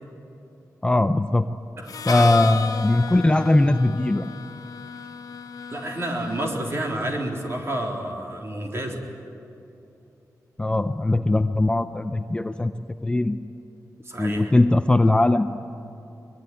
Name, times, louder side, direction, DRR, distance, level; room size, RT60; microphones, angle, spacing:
voice 1, 0.8-1.5 2.1-4.3 10.6-12.7 13.0-13.4 14.2-15.5, left 2 dB, 15° left, 9 dB, 0.6 m, -20 dB
voice 2, 1.8-2.4 5.7-9.0 14.0-14.5, right 1 dB, 40° right, 1 dB, 3.7 m, -30 dB
Harmonica, 1.9-7.6, left 6 dB, 70° left, 1.1 m, -34 dB
23.0 x 21.5 x 9.3 m, 3.0 s
wide cardioid pair, 135°, 7 cm